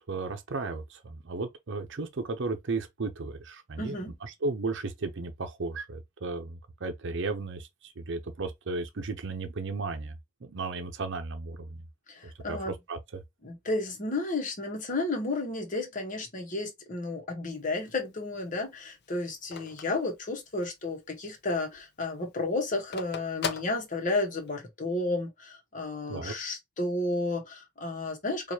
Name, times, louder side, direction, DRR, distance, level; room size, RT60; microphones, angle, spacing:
voice 1, 0.1-7.7 8.0-10.1 10.4-11.8 12.5-13.2 26.1-26.3, right 3 dB, 65° right, 0.7 m, -34 dB
voice 2, 3.8-4.1 12.1-12.7 13.4-28.5, left 2 dB, 40° left, 1.1 m, -32 dB
Telephone, 17.5-20.9 21.3-21.4 21.6-24.5, left 5 dB, 60° left, 0.6 m, -39 dB
4.6 x 2.5 x 2.8 m
head